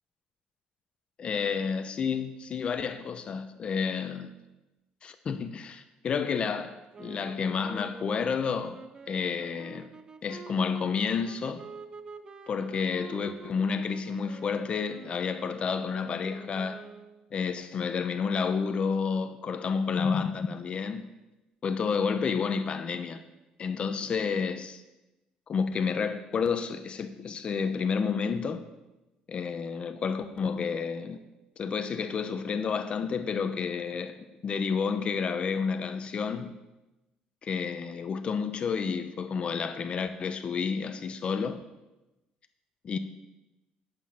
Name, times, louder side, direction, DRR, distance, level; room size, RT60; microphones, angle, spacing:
voice 1, 1.2-4.3 5.0-8.8 9.1-9.9 10.2-11.6 12.5-16.8 17.3-21.1 21.6-23.2 23.6-24.8 25.5-28.6 29.3-31.2 31.6-34.1 34.4-36.5 37.4-41.6 42.8-43.0, left 6 dB, 40° left, 0.7 m, -30 dB
sound 1, 6.9-17.3, right 4 dB, 25° right, 0.6 m, -47 dB
9.9 x 7.8 x 5.7 m
cardioid pair, 130°, 3 cm